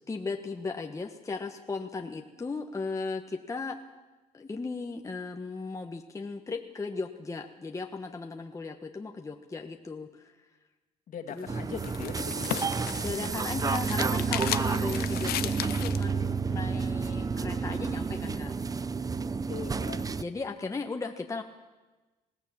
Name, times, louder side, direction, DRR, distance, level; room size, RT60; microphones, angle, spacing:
voice 1, 0.1-3.8 4.3-10.3 11.3-11.5 13.0-18.5 20.2-21.4, left 4 dB, 20° left, 4 dB, 1.3 m, -36 dB
voice 2, 11.1-12.9 19.5-20.1, left 7 dB, 50° left, 5 dB, 2.3 m, -40 dB
sound 1, 11.3-16.1, left 14 dB, 70° left, 0.7 m, -36 dB
sound 2, 11.5-20.2, right 5 dB, 20° right, 0.7 m, -30 dB
20.5 x 16.5 x 8.7 m, 1.2 s
cardioid pair, 110°, 17 cm